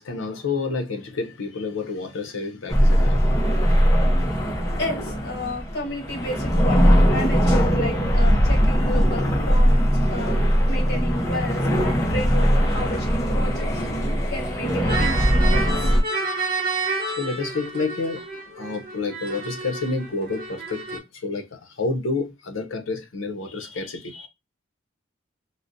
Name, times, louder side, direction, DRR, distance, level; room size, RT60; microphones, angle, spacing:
voice 1, 0.0-3.2 17.2-18.2 18.6-24.3, left 3 dB, 85° left, 0.6 m, -29 dB
sound 1, 2.7-16.0, equal, 15° left, 0.5 m, -20 dB
voice 2, 4.8-10.4 10.7-13.7 14.3-15.9, left 1 dB, 55° left, 1.1 m, -32 dB
sound 2, 14.9-21.0, right 3 dB, 45° right, 0.8 m, -30 dB
3.8 x 2.1 x 2.5 m
head